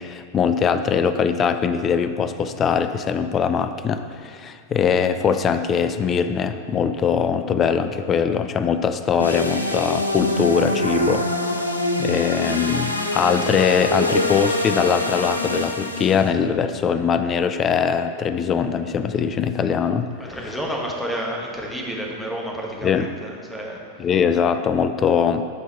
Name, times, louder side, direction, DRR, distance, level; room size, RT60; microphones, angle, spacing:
voice 1, 0.0-11.3 12.0-20.6 22.8-23.1 24.0-25.4, left 6 dB, 25° left, 10 dB, 0.4 m, -21 dB
sound 1, 9.2-16.3, left 1 dB, 85° left, 0.6 m, -24 dB
voice 2, 20.3-23.8, equal, 5° left, -2 dB, 1.3 m, -30 dB
11.0 x 4.6 x 4.4 m, 2.1 s
figure-of-eight pair, 90°, 0 cm